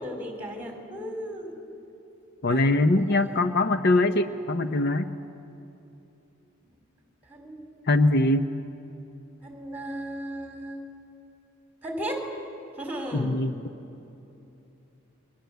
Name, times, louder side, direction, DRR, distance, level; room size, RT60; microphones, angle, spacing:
voice 1, 0.0-1.5 2.5-2.7 3.1-3.4 7.3-7.7 9.4-10.8 11.8-12.2 12.8-13.4, right 1 dB, 10° right, 3 dB, 4.1 m, -35 dB
voice 2, 2.4-5.1 7.9-8.5 13.1-13.6, left 2 dB, 55° left, 9 dB, 0.8 m, -22 dB
29.5 x 23.0 x 8.2 m, 2.9 s
head